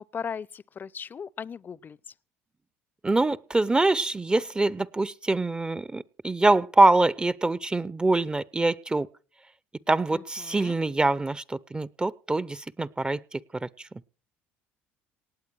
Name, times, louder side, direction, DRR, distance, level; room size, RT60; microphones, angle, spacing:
voice 1, 0.0-2.1 10.1-10.8, left 6 dB, 35° left, 0.6 m, -38 dB
voice 2, 3.0-9.1 9.9-13.9, right 2 dB, 15° right, 0.7 m, -24 dB
18.5 x 8.1 x 6.3 m
supercardioid pair, 75°, 5 cm